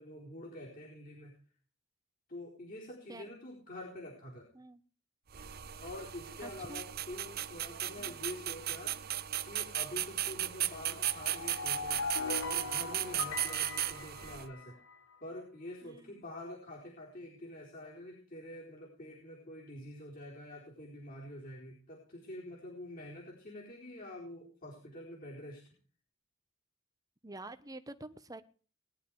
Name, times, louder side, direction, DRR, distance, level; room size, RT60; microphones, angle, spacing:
voice 1, 0.0-1.3 2.3-4.5 5.8-9.0 9.4-14.8 15.2-25.6, left 1 dB, 45° left, -4 dB, 4.3 m, -46 dB
sound 1, 5.3-14.5, right 12 dB, 50° right, 0.8 m, -36 dB
voice 2, 6.4-6.8 8.0-8.2 15.8-16.2 27.2-28.4, right 2 dB, 20° right, 11 dB, 1.1 m, -47 dB
sound 2, 11.0-15.0, left 4 dB, 80° left, 1.3 m, -40 dB
20.5 x 11.0 x 4.9 m, 0.41 s
head